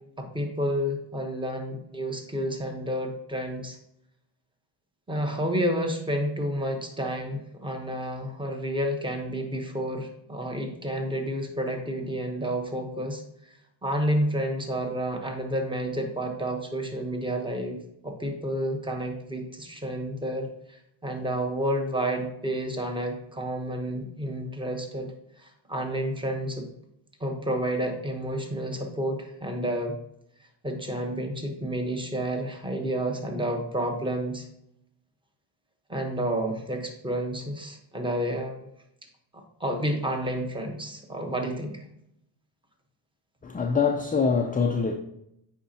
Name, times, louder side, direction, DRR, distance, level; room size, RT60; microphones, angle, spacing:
voice 1, 0.2-3.8 5.1-13.2 13.8-17.8 18.0-25.1 25.4-26.7 27.2-29.9 30.6-34.5 35.9-38.7 39.6-41.8, equal, 10° right, 4 dB, 1.0 m, -30 dB
voice 2, 43.4-45.0, left 5 dB, 20° left, 3 dB, 0.4 m, -24 dB
8.2 x 5.1 x 2.8 m, 0.78 s
cardioid pair, 100°, 50 cm